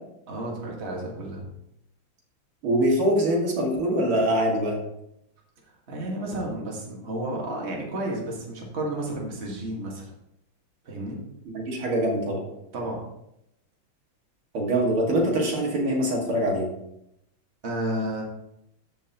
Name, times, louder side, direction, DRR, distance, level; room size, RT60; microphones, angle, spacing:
voice 1, 0.3-1.4 5.6-10.1 10.8-11.2 12.7-13.0 17.6-18.2, right 1 dB, 35° right, -2 dB, 1.8 m, -32 dB
voice 2, 2.6-4.8 11.5-12.4 14.5-16.7, right 1 dB, 85° right, -2 dB, 2.9 m, -23 dB
13.0 x 5.6 x 2.9 m, 0.81 s
omnidirectional pair, 2.3 m